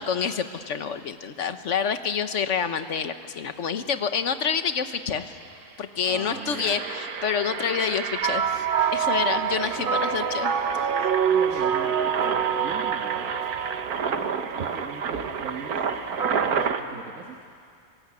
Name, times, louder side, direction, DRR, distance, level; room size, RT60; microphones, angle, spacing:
voice 1, 0.0-5.3 5.8-8.6 8.9-10.5 10.8-11.2, left 7 dB, 55° left, 9 dB, 1.4 m, -28 dB
Engine, 5.1-5.2 5.4-5.6 6.1-16.8, right 6 dB, 80° right, 1.7 m, -31 dB
voice 2, 6.0-6.8 9.5-9.6 11.3-13.3 13.9-17.5, right 5 dB, 60° right, 3 dB, 1.9 m, -41 dB
sound 1, 8.2-16.7, right 8 dB, 45° right, 0.8 m, -26 dB
25.5 x 23.0 x 9.8 m, 2.4 s
omnidirectional pair, 1.6 m